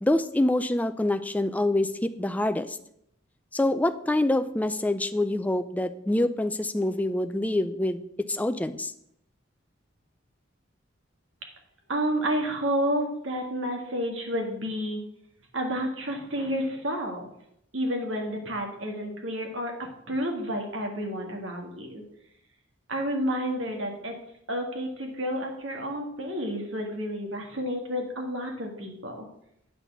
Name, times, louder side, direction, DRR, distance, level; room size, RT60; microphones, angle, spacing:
voice 1, 0.0-2.8 3.5-8.0 8.3-8.9, left 1 dB, 10° left, 10 dB, 0.4 m, -26 dB
voice 2, 11.9-15.0 15.5-17.3 17.7-22.0 22.9-24.2 24.5-29.3, equal, 80° right, 2 dB, 2.0 m, -30 dB
8.9 x 4.2 x 6.8 m, 0.75 s
head